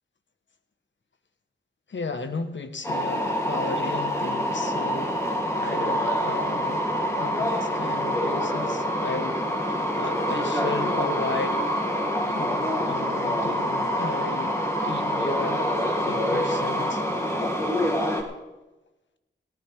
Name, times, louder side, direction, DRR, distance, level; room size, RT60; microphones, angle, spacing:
voice 1, 1.9-5.2 5.6-6.9 7.1-11.6 12.3-17.1, left 4 dB, 65° left, 9 dB, 1.4 m, -35 dB
sound 1, 2.8-18.2, equal, 15° left, 3.1 m, -26 dB
17.5 x 16.0 x 3.6 m, 1.1 s
cardioid pair, 45°, 20 cm